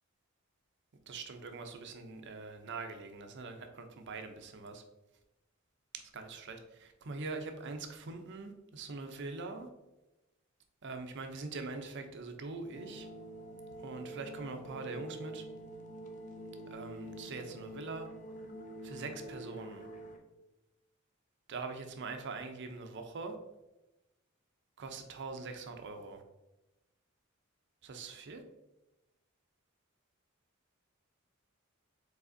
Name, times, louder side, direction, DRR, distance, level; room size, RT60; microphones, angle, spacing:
voice 1, 1.1-4.8 5.9-9.7 10.8-13.1 13.8-15.4 16.7-18.1 18.8-19.9 21.5-23.4 24.8-26.2 27.8-28.4, right 3 dB, 55° right, 6 dB, 0.5 m, -43 dB
sound 1, 12.7-20.2, right 1 dB, 35° left, 0.5 m, -46 dB
4.9 x 4.0 x 2.6 m, 0.98 s
head